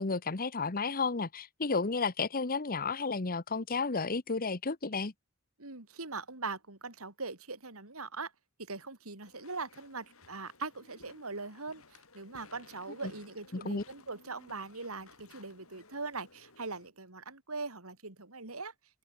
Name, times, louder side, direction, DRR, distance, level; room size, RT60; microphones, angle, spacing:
voice 1, 0.0-5.1 13.6-13.8, left 4 dB, 40° left, 1.1 m, -32 dB
voice 2, 5.6-8.3 8.6-18.7, right 3 dB, 70° right, 3.8 m, -41 dB
Walk footsteps / Chatter / Squeak, 9.2-16.9, left 3 dB, 65° left, 7.9 m, -58 dB
head